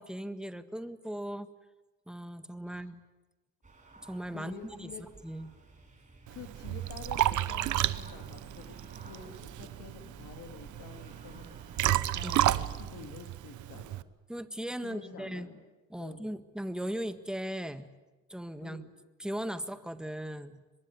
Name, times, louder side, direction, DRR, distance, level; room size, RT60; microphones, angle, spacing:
voice 1, 0.0-1.5 2.1-3.0 4.1-5.5 12.2-12.7 14.3-15.5 15.9-17.9 18.3-18.8 19.2-20.6, right 1 dB, ahead, 10 dB, 1.6 m, -38 dB
sound 1, 3.6-12.9, right 3 dB, 25° right, 6.7 m, -55 dB
voice 2, 4.3-5.1 6.3-14.0 14.8-15.7 16.0-16.2 18.6-18.9, left 7 dB, 80° left, 7 dB, 2.8 m, -49 dB
Liquid, 6.3-14.0, right 14 dB, 75° right, 0.9 m, -32 dB
sound 2, 6.4-13.1, right 7 dB, 55° right, 2.8 m, -53 dB
24.5 x 21.5 x 9.5 m, 1.1 s
cardioid pair, 90°, 30 cm